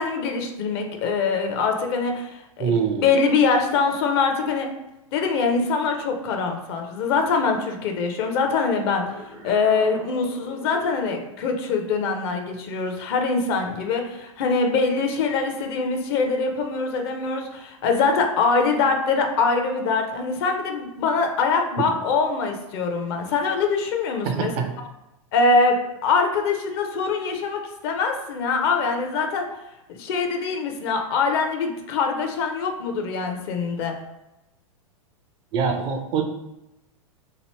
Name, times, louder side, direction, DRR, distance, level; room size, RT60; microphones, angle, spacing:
voice 1, 0.0-2.7 3.0-4.7 5.1-9.0 9.4-24.5 25.3-29.4 29.9-33.9, left 4 dB, 45° left, 4 dB, 0.6 m, -23 dB
voice 2, 2.6-3.1 21.8-21.9 24.2-24.7 35.5-36.2, right 6 dB, 30° right, 5 dB, 0.4 m, -24 dB
sound 1, 8.8-11.1, right 1 dB, 80° right, 1.0 m, -42 dB
2.9 x 2.6 x 3.0 m, 0.91 s
figure-of-eight pair, 100°, 18 cm